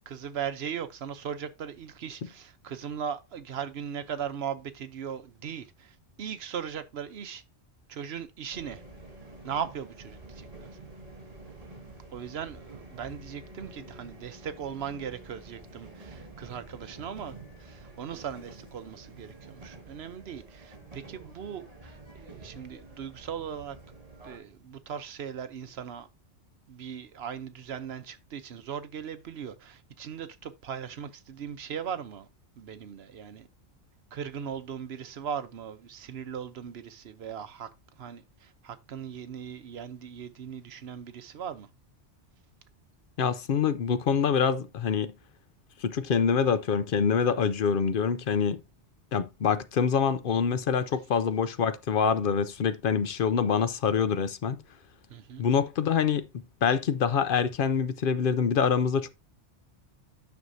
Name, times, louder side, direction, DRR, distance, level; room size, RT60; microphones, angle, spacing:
voice 1, 0.1-7.4 7.9-8.8 9.4-10.5 12.1-17.3 17.6-23.8 24.2-26.1 26.7-32.3 32.6-33.5 34.1-37.7 38.0-41.7 55.1-55.4, right 8 dB, 65° right, 1.0 m, -38 dB
sound 1, 8.5-24.4, right 2 dB, 35° right, 1.7 m, -48 dB
voice 2, 43.2-45.1 45.8-48.6 49.1-54.6 55.4-56.3 56.6-59.1, left 6 dB, 55° left, 0.7 m, -25 dB
9.4 x 6.2 x 2.7 m
omnidirectional pair, 1.2 m